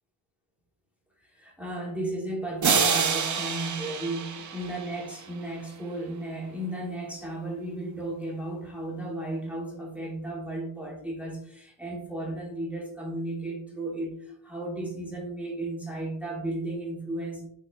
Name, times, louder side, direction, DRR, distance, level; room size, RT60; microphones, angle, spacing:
voice 1, 1.3-17.5, right 1 dB, 5° right, -2 dB, 1.1 m, -34 dB
sound 1, 2.6-5.5, right 6 dB, 40° right, 0.5 m, -27 dB
4.8 x 4.4 x 2.3 m, 0.71 s
wide cardioid pair, 125°, 46 cm